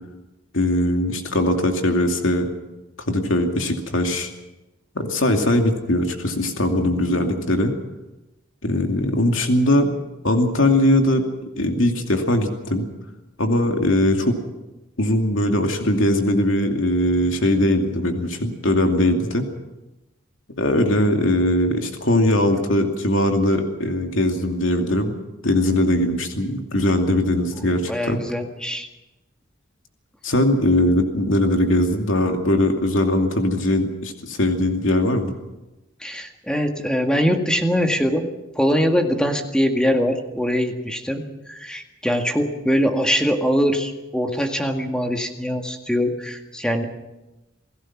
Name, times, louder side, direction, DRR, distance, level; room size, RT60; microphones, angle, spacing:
voice 1, 0.5-2.5 3.1-4.3 4.9-7.7 8.6-9.9 10.2-11.2 11.6-12.9 13.4-14.4 15.0-19.5 20.6-25.1 25.4-28.2 30.2-35.3, left 1 dB, 85° left, 3 dB, 2.6 m, -20 dB
voice 2, 27.6-28.9 36.0-38.3 38.6-41.2 41.5-46.8, equal, 5° left, 3 dB, 1.9 m, -22 dB
28.5 x 17.0 x 6.0 m, 1.0 s
head